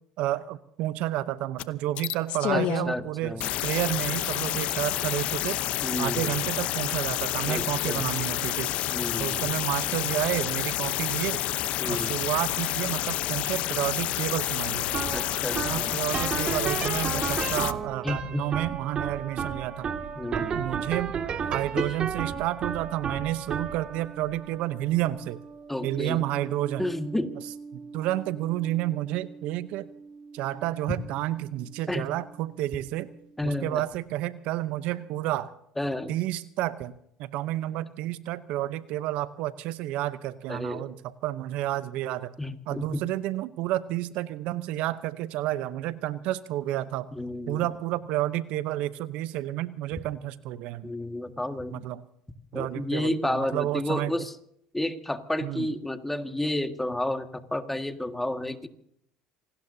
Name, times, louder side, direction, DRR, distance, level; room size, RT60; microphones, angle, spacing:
voice 1, 0.2-5.6 6.0-8.7 9.2-11.4 11.9-14.9 15.5-19.9 20.3-21.2 21.5-25.4 25.8-26.9 27.7-29.9 30.3-33.1 33.4-35.5 36.1-36.9 37.2-42.3 42.7-47.1 47.5-50.9 51.7-52.0 52.5-54.1 55.4-55.7, right 14 dB, 65° right, 14 dB, 0.8 m, -30 dB
sound 1, 1.6-1.7 2.0-2.9 3.4-17.7, left 14 dB, 60° left, 0.8 m, -29 dB
voice 2, 2.5-3.5 5.8-6.3 7.5-8.0 8.9-9.4 11.8-12.2 15.1-15.9 18.0-18.5 20.2-20.7 21.8-21.9 25.7-26.2 26.8-27.3 31.9-32.0 33.4-33.8 35.8-36.1 40.5-40.9 42.4-43.0 47.1-47.6 50.8-51.8 52.5-54.3 54.7-58.7, left 1 dB, 10° left, 7 dB, 1.8 m, -31 dB
sound 2, 14.8-32.0, right 6 dB, 40° right, 2.1 m, -35 dB
27.0 x 19.0 x 2.8 m, 0.71 s
hypercardioid pair, 75°, 2 cm